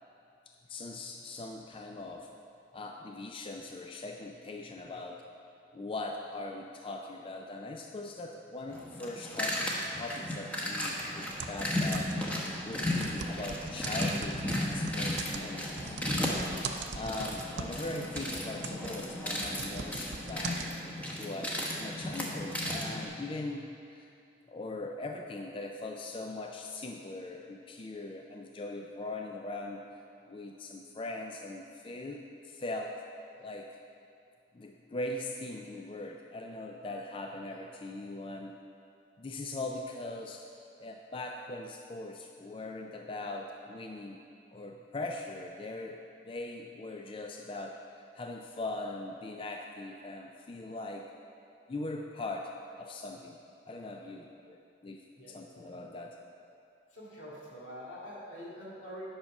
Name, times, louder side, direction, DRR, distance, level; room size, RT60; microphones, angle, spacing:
voice 1, 0.7-2.3 2.7-5.3 5.7-9.7 10.0-12.3 12.6-16.5 16.9-20.6 21.1-24.1 24.5-29.8 30.3-33.0 33.4-33.7 34.5-38.6 39.2-40.5 40.8-44.2 44.5-46.0 46.3-51.1 51.7-53.4 53.7-55.0 55.3-56.2, left 2 dB, 30° left, 3 dB, 0.4 m, -40 dB
sound 1, 8.7-23.0, left 1 dB, 10° left, 1.0 m, -35 dB
sound 2, 11.4-12.4 12.8-17.9 18.2-20.7, right 5 dB, 60° right, 0.6 m, -41 dB
voice 2, 55.2-55.8 56.9-59.0, equal, 85° left, -5 dB, 2.3 m, -46 dB
9.6 x 5.9 x 5.6 m, 2.5 s
head